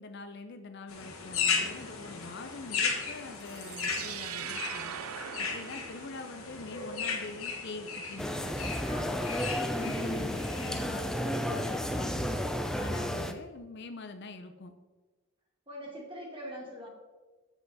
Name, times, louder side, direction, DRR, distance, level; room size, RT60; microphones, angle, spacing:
voice 1, 0.0-5.0 5.4-8.7 9.8-12.4 12.8-14.7, left 3 dB, 50° left, 8 dB, 0.6 m, -44 dB
sound 1, 0.9-10.8, left 5 dB, 80° left, 1.7 m, -36 dB
sound 2, 3.4-6.5, right 11 dB, 80° right, 0.4 m, -41 dB
sound 3, 8.2-13.3, equal, 5° left, 0.4 m, -32 dB
voice 2, 8.8-9.3 15.7-16.9, equal, 25° right, -1 dB, 1.9 m, -42 dB
8.0 x 7.9 x 4.1 m, 1.3 s
head